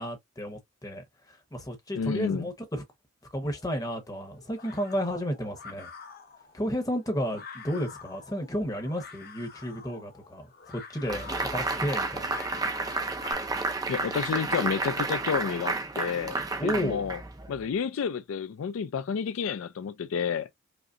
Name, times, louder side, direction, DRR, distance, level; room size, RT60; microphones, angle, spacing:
voice 1, 0.0-2.8 3.3-5.9 6.5-12.6 16.6-17.0, equal, 15° left, 0.9 m, -32 dB
voice 2, 1.9-2.5 13.9-16.4 16.6-17.2 17.5-20.5, left 6 dB, 65° left, 0.3 m, -30 dB
sound 1, 3.5-13.3, left 5 dB, 45° left, 0.7 m, -47 dB
sound 2, 11.1-17.6, right 3 dB, 15° right, 0.4 m, -31 dB
5.1 x 2.0 x 2.4 m
head